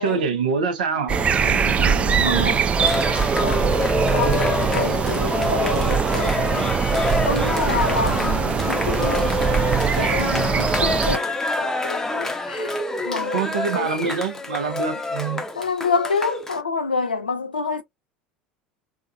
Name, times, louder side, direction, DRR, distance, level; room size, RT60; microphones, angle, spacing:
voice 1, 0.0-1.1 2.1-2.6 13.3-15.4, right 5 dB, 65° right, 0.8 m, -25 dB
voice 2, 0.9-2.7 3.4-3.8 4.1-6.7 7.2-9.3 10.0-11.3 11.6-12.8 13.0-14.2 15.5-17.8, left 4 dB, 80° left, 0.7 m, -28 dB
sound 1, 1.1-11.2, right 6 dB, 25° right, 0.4 m, -22 dB
Cheering, 2.7-16.6, left 2 dB, 10° left, 0.7 m, -26 dB
3.5 x 2.4 x 2.2 m
figure-of-eight pair, 75°, 5 cm